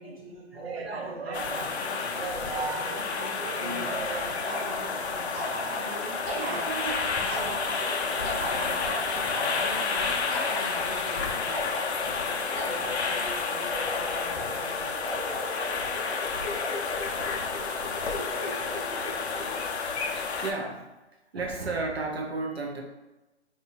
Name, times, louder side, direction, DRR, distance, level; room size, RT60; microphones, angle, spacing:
voice 1, 0.0-2.3 2.7-6.7 7.1-9.0 9.5-11.7 12.0-14.9, equal, 30° left, -6 dB, 0.8 m, -45 dB
voice 2, 0.5-4.7 5.4-5.9 6.3-7.6 8.0-10.5 16.7-17.3 18.2-19.6 20.4-21.0 21.3-22.8, right 3 dB, 60° right, 2 dB, 0.7 m, -37 dB
sound 1, 1.3-20.5, left 4 dB, 70° left, 0.5 m, -30 dB
sound 2, 4.4-19.6, left 1 dB, 5° left, 1.1 m, -37 dB
2.8 x 2.3 x 2.8 m, 1.0 s
hypercardioid pair, 170°, 35 cm